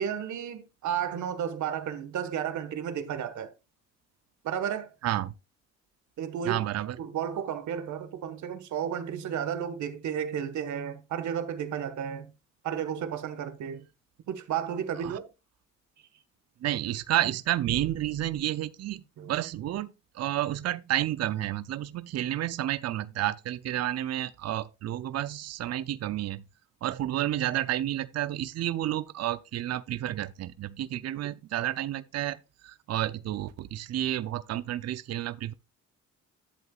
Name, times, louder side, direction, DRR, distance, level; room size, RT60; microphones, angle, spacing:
voice 1, 0.0-3.5 4.4-4.9 6.2-6.6 7.0-12.3 12.6-13.8 14.3-15.3 19.2-19.3, right 8 dB, 75° right, 1.5 m, -32 dB
voice 2, 5.0-5.3 6.5-7.0 15.0-15.2 16.6-26.4 26.8-35.5, right 13 dB, 55° right, 0.6 m, -31 dB
11.0 x 7.9 x 2.4 m
cardioid pair, 90°, 30 cm